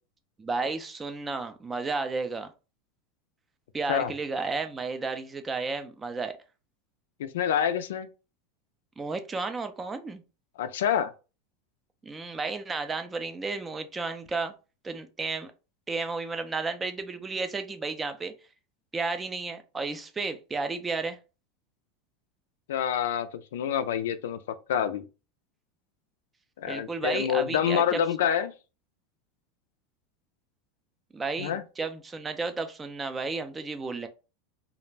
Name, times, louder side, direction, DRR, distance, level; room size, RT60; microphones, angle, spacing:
voice 1, 0.4-2.5 3.7-6.4 9.0-10.2 12.0-14.5 14.8-15.5 15.9-18.3 18.9-21.2 26.7-28.0 31.1-34.1, right 3 dB, 15° right, 0.4 m, -32 dB
voice 2, 7.2-8.1 10.6-11.1 22.7-25.0 26.6-28.5 31.4-31.6, left 9 dB, 90° left, 0.3 m, -27 dB
2.3 x 2.0 x 3.2 m
supercardioid pair, 140°, 0 cm